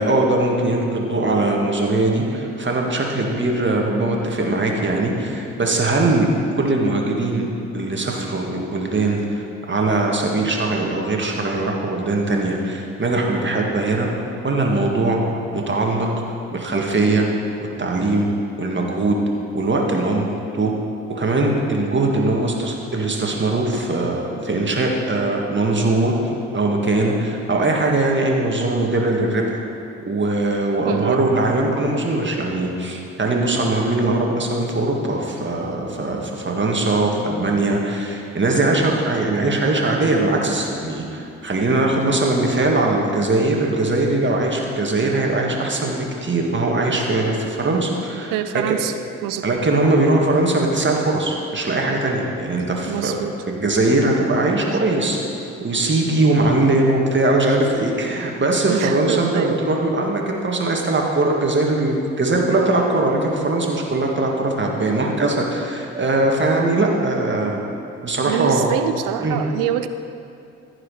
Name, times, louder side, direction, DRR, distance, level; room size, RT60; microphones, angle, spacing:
voice 1, 0.0-6.3 6.5-7.5 7.7-14.1 14.4-15.2 15.5-16.1 16.5-17.3 17.8-18.3 18.6-19.2 19.5-20.3 20.5-20.7 21.1-26.1 26.5-29.4 30.1-48.7 49.4-53.2 53.5-55.2 55.6-67.6 68.0-68.8 69.2-69.4, right 2 dB, 35° right, 0 dB, 1.9 m, -20 dB
voice 2, 30.8-31.2 48.3-48.9 49.2-49.6 52.8-53.3 58.7-59.6 68.3-69.9, right 11 dB, 75° right, 11 dB, 0.5 m, -25 dB
14.5 x 5.0 x 4.9 m, 2.6 s
hypercardioid pair, 45°, 33 cm